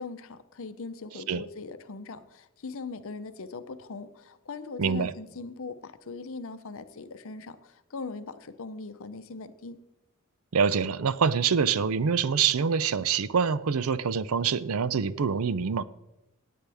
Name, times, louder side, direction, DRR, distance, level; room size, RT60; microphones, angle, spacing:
voice 1, 0.0-9.8, left 4 dB, 65° left, 0.7 m, -40 dB
voice 2, 4.8-5.1 10.5-15.8, right 6 dB, 75° right, 0.5 m, -25 dB
18.0 x 8.6 x 3.5 m
head